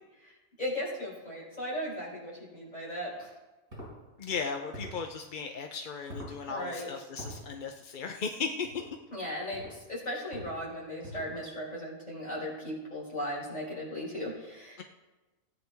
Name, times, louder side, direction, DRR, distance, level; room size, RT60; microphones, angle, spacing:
voice 1, 0.6-3.3 6.5-6.9 9.1-14.8, equal, 25° left, -6 dB, 5.2 m, -37 dB
sound 1, 3.7-3.9 4.7-5.0 6.1-6.4 7.2-7.4 8.6-8.9 9.5-9.8 10.3-10.6 11.0-11.4, equal, 50° right, 5.6 m, -43 dB
voice 2, 4.2-8.7 14.8-14.9, left 5 dB, 45° left, 3 dB, 0.7 m, -36 dB
17.5 x 9.8 x 3.5 m, 1.1 s
omnidirectional pair, 1.6 m